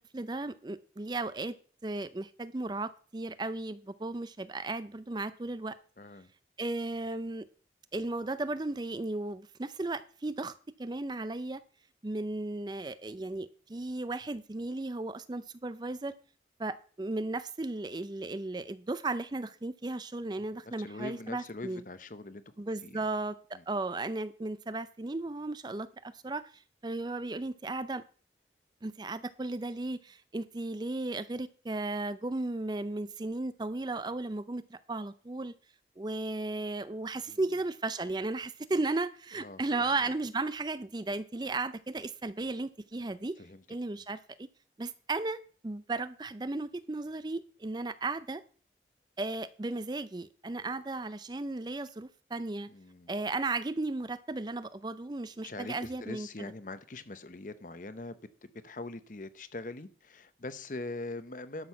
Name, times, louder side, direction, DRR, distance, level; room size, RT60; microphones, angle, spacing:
voice 1, 0.1-1.6 1.8-5.8 6.6-7.5 7.9-10.5 10.8-11.6 12.0-16.1 16.6-21.8 22.6-28.0 28.8-35.5 36.0-43.4 43.7-44.5 44.8-45.4 45.6-48.4 49.2-52.7 53.1-56.3, right 2 dB, 25° right, 14 dB, 0.4 m, -35 dB
voice 2, 6.0-6.3 20.6-22.4 22.8-23.1 23.5-23.6 37.3-37.4 39.3-40.1 43.4-43.6 52.7-53.1 55.4-58.2 58.6-61.7, left 2 dB, 50° left, 13 dB, 0.8 m, -42 dB
12.0 x 6.2 x 5.7 m, 0.42 s
head